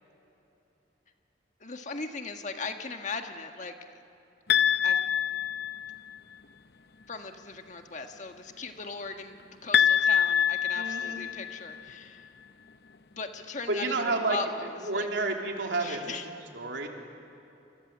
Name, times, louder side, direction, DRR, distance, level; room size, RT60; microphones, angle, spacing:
voice 1, 1.6-3.9 4.8-5.0 7.1-12.3 13.1-15.1 15.8-16.2, left 4 dB, 40° left, 5 dB, 1.6 m, -38 dB
sound 1, 4.5-6.1 9.7-11.8, left 8 dB, 60° left, 0.8 m, -25 dB
voice 2, 10.7-11.2 13.7-14.4 14.8-16.9, right 3 dB, 80° right, 1 dB, 3.4 m, -30 dB
27.5 x 27.0 x 7.4 m, 2.9 s
head